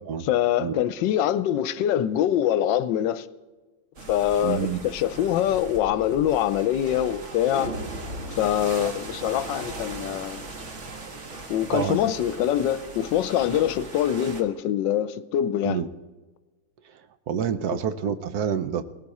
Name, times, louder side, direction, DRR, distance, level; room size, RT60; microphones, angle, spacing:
voice 1, 0.3-3.3 4.1-7.7 8.4-10.4 11.5-15.8 17.7-17.8, left 11 dB, 75° left, 1.3 m, -24 dB
sound 1, 4.0-14.4, right 2 dB, 40° right, 1.6 m, -38 dB
voice 2, 4.4-4.8 11.7-12.0 15.6-15.9 17.3-18.8, right 8 dB, 65° right, 1.1 m, -27 dB
19.0 x 16.5 x 4.2 m
omnidirectional pair, 2.0 m